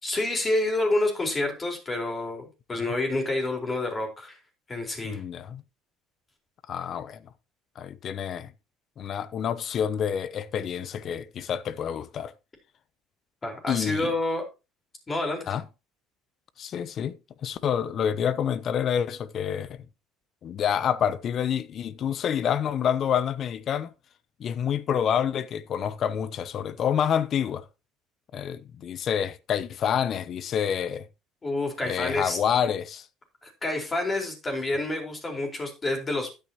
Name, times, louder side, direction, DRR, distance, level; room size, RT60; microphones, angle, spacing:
voice 1, 0.0-4.4 4.7-5.2 13.4-14.5 15.1-15.5 31.4-32.4 33.4-36.3, left 2 dB, 30° left, 4.4 m, -28 dB
voice 2, 5.0-5.6 6.7-7.3 7.8-8.5 9.0-12.3 13.7-14.1 15.5-15.6 16.6-17.2 17.4-19.8 20.4-23.9 24.4-27.7 28.3-31.1 31.8-33.1, left 8 dB, 50° left, 0.9 m, -28 dB
13.0 x 9.1 x 2.9 m
hypercardioid pair, 75°, 0 cm